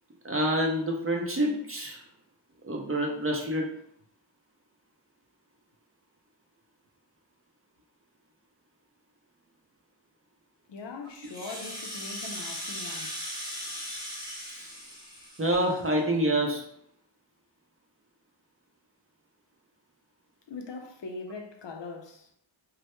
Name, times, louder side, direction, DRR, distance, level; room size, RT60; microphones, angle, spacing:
voice 1, 0.2-2.0 2.6-3.7 14.5-14.7 15.4-16.7, right 1 dB, 30° right, 0.5 m, -27 dB
voice 2, 10.7-13.3 20.5-22.3, left 3 dB, 65° left, 0.5 m, -41 dB
Rattle (instrument), 11.2-15.9, equal, 10° right, 0.8 m, -38 dB
2.1 x 2.1 x 2.9 m
wide cardioid pair, 45°, 47 cm